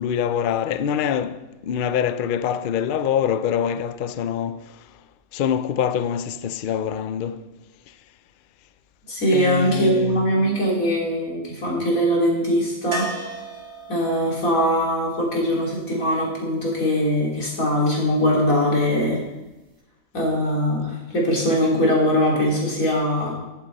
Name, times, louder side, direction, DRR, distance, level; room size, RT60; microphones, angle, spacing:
voice 1, 0.0-5.0 5.3-7.5 7.9-8.0 9.3-10.6, left 8 dB, 85° left, 0.4 m, -25 dB
voice 2, 9.1-13.1 13.9-19.2 20.1-23.3, equal, 65° left, 3.7 m, -21 dB
sound 1, 12.9-16.8 19.5-19.6 19.8-19.9, right 1 dB, 35° right, 1.8 m, -37 dB
15.5 x 8.3 x 4.0 m
omnidirectional pair, 1.6 m